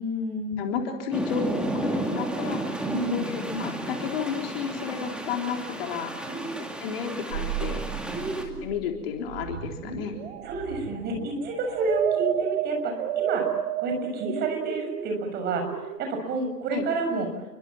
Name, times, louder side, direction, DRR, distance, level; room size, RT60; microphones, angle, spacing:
voice 1, 0.0-0.6 2.8-3.3 6.3-6.5 8.1-8.6 10.4-13.5 13.8-17.3, right 2 dB, 20° right, 5 dB, 6.5 m, -30 dB
voice 2, 0.6-2.8 3.1-6.1 6.8-7.9 8.6-10.1 16.7-16.9, left 7 dB, 35° left, 3 dB, 3.8 m, -32 dB
sound 1, 1.1-8.4, right 2 dB, ahead, 2.4 m, -32 dB
sound 2, 7.3-16.0, right 11 dB, 40° right, 2.6 m, -31 dB
29.5 x 23.5 x 7.4 m, 1.0 s
figure-of-eight pair, 130°, 48 cm